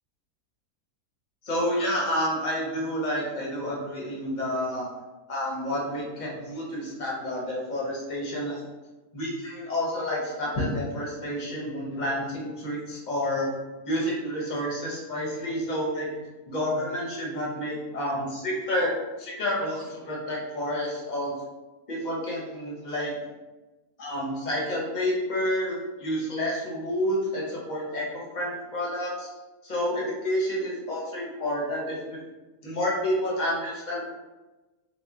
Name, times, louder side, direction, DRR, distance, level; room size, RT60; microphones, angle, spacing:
voice 1, 1.4-4.9 5.3-8.6 9.1-13.5 13.8-16.1 16.5-21.3 21.9-23.2 24.0-29.3 29.6-32.2 32.6-34.0, equal, 35° left, -4 dB, 0.8 m, -29 dB
3.6 x 2.2 x 3.6 m, 1.1 s
omnidirectional pair, 1.6 m